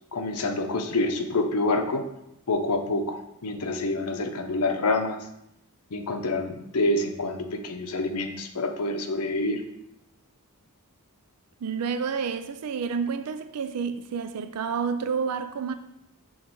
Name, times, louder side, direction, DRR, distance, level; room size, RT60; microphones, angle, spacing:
voice 1, 0.1-2.1 2.5-5.2 5.9-9.6, left 2 dB, 85° left, 0.7 m, -27 dB
voice 2, 11.6-15.7, right 6 dB, 90° right, 0.4 m, -29 dB
6.3 x 3.9 x 4.6 m
head